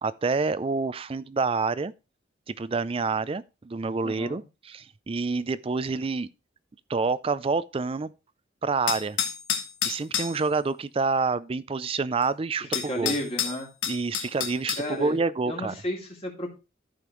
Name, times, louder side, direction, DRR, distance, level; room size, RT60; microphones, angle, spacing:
voice 1, 0.0-1.9 2.5-6.3 6.9-8.1 8.6-9.2 9.8-13.1 13.9-15.7, right 4 dB, 30° right, 0.4 m, -28 dB
voice 2, 4.0-4.4 12.7-13.7 14.8-15.2 15.5-16.6, equal, 30° left, 2.6 m, -32 dB
sound 1, 8.9-10.4 12.2-12.3 12.7-14.9, left 8 dB, 75° left, 1.4 m, -29 dB
14.5 x 5.0 x 3.1 m
head